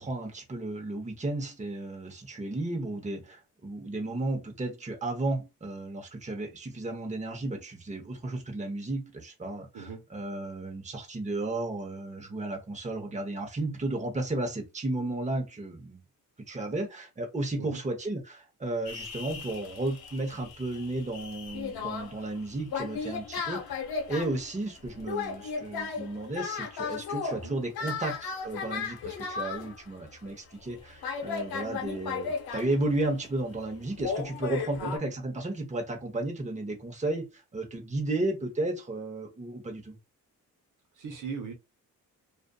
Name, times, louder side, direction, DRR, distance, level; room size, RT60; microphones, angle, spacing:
voice 1, 0.0-16.0 16.5-23.8 24.1-40.0, right 2 dB, 20° right, 0.9 m, -33 dB
sound 1, 18.8-29.8 30.2-30.3 30.7-30.8 31.0-33.3 34.0-35.0, left 5 dB, 85° left, 0.8 m, -36 dB
voice 2, 40.9-41.5, right 5 dB, 55° right, 0.9 m, -38 dB
2.5 x 2.5 x 2.3 m
cardioid pair, 65°, 36 cm